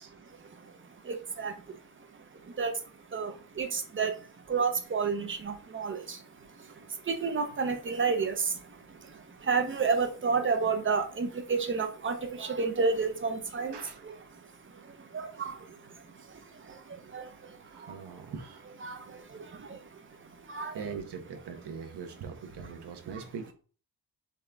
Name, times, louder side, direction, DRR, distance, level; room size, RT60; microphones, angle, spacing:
voice 1, 0.3-18.0 18.8-20.9, right 5 dB, 30° right, 0.7 m, -32 dB
voice 2, 13.7-14.0 17.6-18.7 20.7-23.5, right 6 dB, 75° right, 1.0 m, -41 dB
4.2 x 3.7 x 3.4 m
wide cardioid pair, 140°, 41 cm